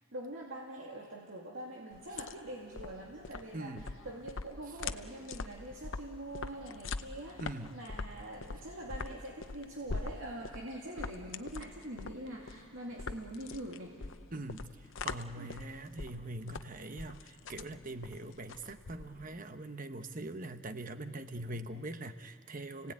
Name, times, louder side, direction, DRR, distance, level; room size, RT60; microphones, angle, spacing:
voice 1, 0.1-14.1 15.4-15.5, right 1 dB, 75° right, -2 dB, 2.4 m, -44 dB
sound 1, 1.9-19.4, left 4 dB, 70° left, 0.7 m, -43 dB
voice 2, 3.5-3.9 7.4-7.8 14.3-22.9, right 2 dB, 40° right, 9 dB, 1.0 m, -43 dB
29.5 x 17.5 x 9.1 m, 2.1 s
head